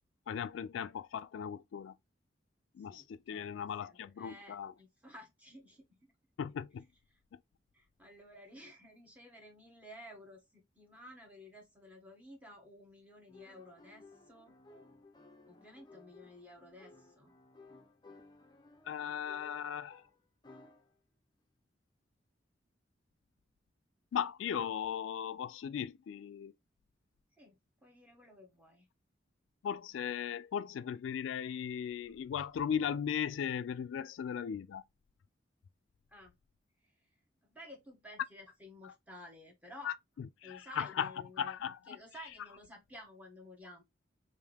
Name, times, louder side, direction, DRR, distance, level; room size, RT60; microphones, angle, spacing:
voice 1, 0.3-1.9 2.7-4.7 6.4-6.8 18.9-20.0 24.1-26.5 29.6-34.8 39.8-39.9 40.4-41.1 41.4-42.0, left 8 dB, 90° left, 0.3 m, -37 dB
voice 2, 2.8-6.1 7.1-7.2 7.7-14.6 15.4-17.3 27.4-28.9 36.1-36.3 36.8-37.1 37.4-39.9 40.4-41.6 41.9-43.8, left 1 dB, 10° right, 1.2 m, -54 dB
sound 1, 13.3-21.0, left 2 dB, 25° left, 0.5 m, -58 dB
3.5 x 2.6 x 3.3 m
head